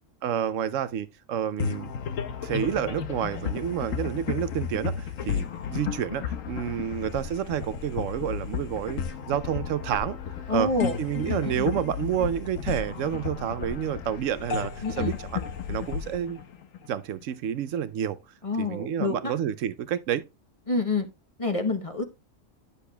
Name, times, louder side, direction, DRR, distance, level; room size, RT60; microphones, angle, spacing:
voice 1, 0.2-1.9 2.4-10.2 10.5-10.7 11.0-15.4 15.7-16.4 16.9-18.2 18.6-20.3, right 9 dB, 75° right, 0.9 m, -29 dB
sound 1, 1.6-17.2, left 7 dB, 90° left, 1.2 m, -33 dB
voice 2, 10.5-11.0 11.6-11.7 14.8-15.2 18.4-19.3 20.7-21.1 21.4-22.1, left 2 dB, 30° left, 0.8 m, -27 dB
10.0 x 6.8 x 2.2 m
omnidirectional pair, 1.3 m